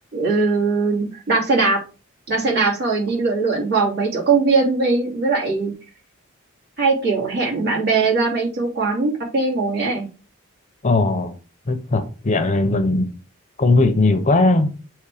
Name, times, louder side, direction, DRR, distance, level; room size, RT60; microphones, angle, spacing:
voice 1, 0.1-1.8 2.3-5.7 6.8-10.1, right 3 dB, 50° right, 3.2 m, -20 dB
voice 2, 10.8-11.3 11.7-13.1 13.6-14.7, left 2 dB, 35° left, 0.7 m, -18 dB
7.8 x 3.2 x 4.9 m
head